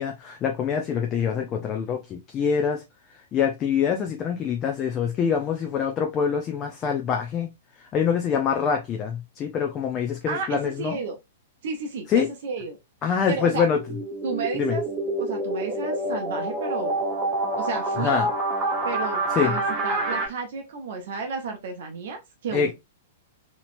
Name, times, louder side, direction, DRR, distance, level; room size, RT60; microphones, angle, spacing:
voice 1, 0.0-2.8 3.3-7.5 7.9-11.0 12.1-12.3 13.0-13.8 14.6-14.8 18.0-18.3 19.3-19.5 22.5-22.7, left 7 dB, 30° left, 0.6 m, -25 dB
voice 2, 10.3-11.2 11.6-12.8 13.3-13.7 14.2-14.8 15.2-17.0 17.6-18.2 18.8-22.7, right 4 dB, 55° right, 0.7 m, -32 dB
sound 1, 13.7-20.3, right 2 dB, 20° right, 1.2 m, -27 dB
4.1 x 3.0 x 2.5 m
figure-of-eight pair, 105°, 0 cm